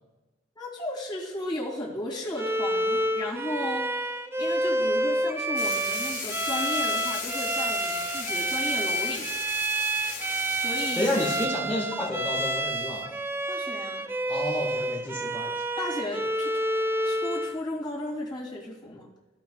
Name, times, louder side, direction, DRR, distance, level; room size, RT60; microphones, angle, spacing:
voice 1, 0.5-3.9 4.4-9.3 10.5-11.2 13.5-14.1 15.8-16.6 17.0-19.1, left 1 dB, 25° left, -4 dB, 2.6 m, -34 dB
Bowed string instrument, 2.4-17.6, right 1 dB, 10° right, 0.3 m, -29 dB
sound 1, 5.6-11.5, left 5 dB, 40° left, 1.8 m, -36 dB
voice 2, 11.0-13.1 14.3-15.6, left 1 dB, 10° left, -7 dB, 1.7 m, -30 dB
16.0 x 5.8 x 2.4 m, 1.1 s
head